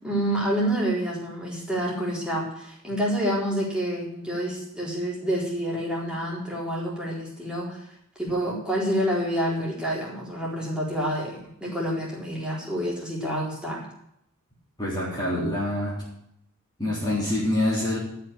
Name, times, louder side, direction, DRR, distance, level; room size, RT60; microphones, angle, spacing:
voice 1, 0.0-7.9 8.2-13.9, equal, 5° right, -5 dB, 4.1 m, -28 dB
voice 2, 14.8-16.0 16.8-18.0, left 1 dB, 20° left, -7 dB, 3.7 m, -26 dB
13.5 x 6.0 x 8.5 m, 0.76 s
head